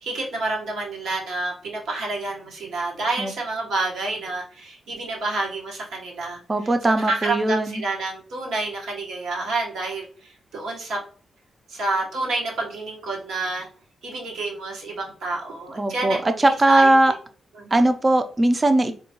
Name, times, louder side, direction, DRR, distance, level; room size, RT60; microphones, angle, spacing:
voice 1, 0.0-6.4 6.9-11.0 11.7-13.7 14.0-16.4 16.7-16.9 17.6-17.8, right 2 dB, 85° right, -1 dB, 1.1 m, -29 dB
voice 2, 6.5-7.8 15.8-17.1 17.7-18.9, right 2 dB, 25° right, 9 dB, 0.4 m, -19 dB
3.6 x 2.2 x 2.9 m, 0.42 s
cardioid pair, 95°, 0 cm